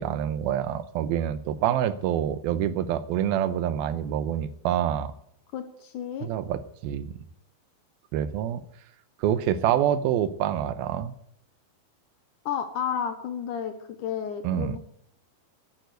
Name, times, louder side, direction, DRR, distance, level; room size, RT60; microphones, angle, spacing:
voice 1, 0.0-5.1 6.2-7.1 8.1-8.6 9.2-11.2 14.4-14.8, right 10 dB, 80° right, 14 dB, 2.5 m, -26 dB
voice 2, 5.5-6.3 12.5-14.8, left 8 dB, 65° left, 8 dB, 2.2 m, -32 dB
11.5 x 9.3 x 7.9 m, 0.70 s
omnidirectional pair, 4.5 m